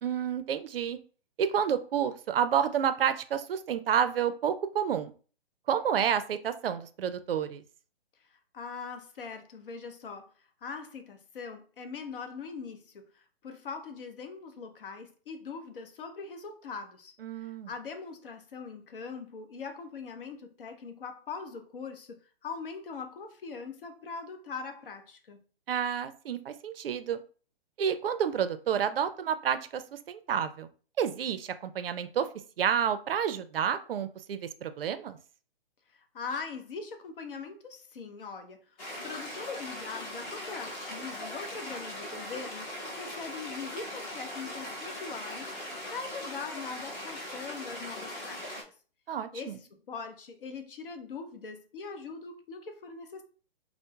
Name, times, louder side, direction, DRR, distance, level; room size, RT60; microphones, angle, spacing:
voice 1, 0.0-1.0 1.4-5.1 5.7-7.6 17.2-17.7 25.7-27.2 27.8-30.7 31.0-32.3 32.6-35.2 49.1-49.6, right 8 dB, 65° right, 0.5 m, -29 dB
voice 2, 8.3-10.3 10.6-25.4 35.9-48.7 49.3-53.2, left 5 dB, 60° left, 0.7 m, -42 dB
sound 1, 38.8-48.6, left 1 dB, 15° left, 0.6 m, -40 dB
4.5 x 2.0 x 2.3 m
figure-of-eight pair, 135°, 31 cm